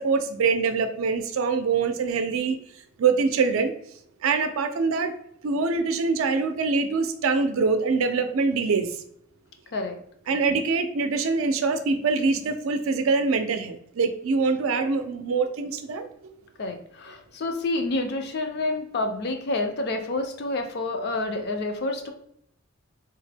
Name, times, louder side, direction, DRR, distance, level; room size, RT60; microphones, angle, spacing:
voice 1, 0.0-2.6 3.0-3.7 4.2-5.1 5.4-8.9 10.3-16.1, right 4 dB, 80° right, 8 dB, 0.4 m, -24 dB
voice 2, 16.6-22.1, left 2 dB, 55° left, 5 dB, 0.5 m, -28 dB
3.4 x 2.1 x 3.3 m, 0.71 s
head